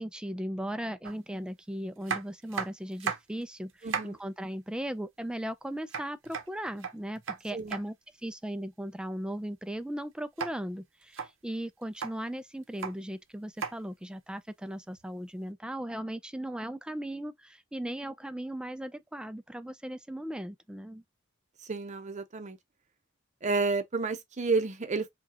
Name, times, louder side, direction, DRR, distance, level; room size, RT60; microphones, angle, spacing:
voice 1, 0.0-8.0 8.2-21.0, right 1 dB, 5° right, 0.3 m, -37 dB
sound 1, 1.0-1.2 2.0-3.4 3.7-4.2 5.9-7.8 10.4-10.5 11.0-11.3 11.8-12.2 12.6-12.9 13.6-13.8 15.0-15.1, right 6 dB, 75° right, 0.8 m, -35 dB
voice 2, 3.8-4.2 7.5-7.8 21.6-22.6 23.4-25.1, right 4 dB, 35° right, 0.7 m, -30 dB
4.8 x 2.3 x 2.8 m
head